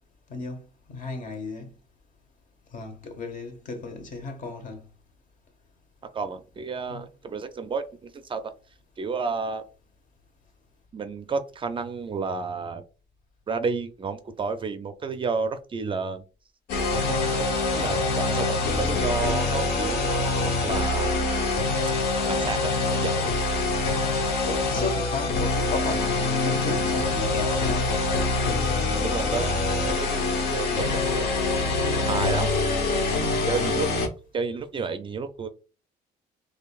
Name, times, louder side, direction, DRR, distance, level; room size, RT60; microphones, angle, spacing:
voice 1, 0.3-0.6 0.9-1.7 2.7-4.8 6.9-7.0 24.4-27.9, left 3 dB, 50° left, 1.0 m, -34 dB
voice 2, 6.1-8.4 9.0-9.6 10.9-12.8 13.5-16.3 17.0-21.2 22.3-23.3 29.0-31.3 31.8-32.5 33.0-33.2 33.4-35.5, right 4 dB, 30° right, 0.4 m, -31 dB
sound 1, 16.7-34.1, left 3 dB, 75° left, 1.0 m, -25 dB
3.8 x 3.2 x 2.4 m
cardioid pair, 110°, 17 cm